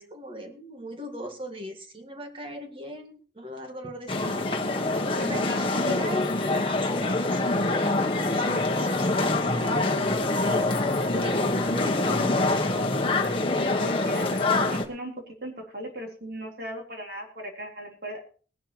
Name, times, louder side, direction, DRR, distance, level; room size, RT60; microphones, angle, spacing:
voice 1, 0.0-4.6 5.3-10.7 11.0-12.4, equal, 30° right, 4 dB, 1.9 m, -39 dB
sound 1, 4.1-14.8, left 2 dB, 30° left, 1.4 m, -25 dB
voice 2, 5.2-5.6 13.8-15.1 15.4-18.2, equal, 60° right, 1 dB, 3.8 m, -37 dB
20.0 x 11.0 x 3.1 m, 0.40 s
head